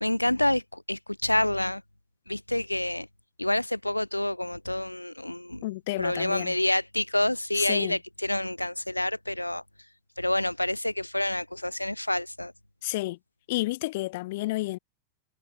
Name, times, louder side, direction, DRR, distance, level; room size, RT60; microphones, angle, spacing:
voice 1, 0.0-0.6 0.9-1.8 2.3-3.0 3.4-5.6 6.0-9.6 10.2-12.5, left 1 dB, 85° left, 1.2 m, -28 dB
voice 2, 5.6-6.6 7.5-8.0 12.8-13.2 13.5-14.8, left 19 dB, 50° left, 2.4 m, -31 dB
figure-of-eight pair, 90°, 0 cm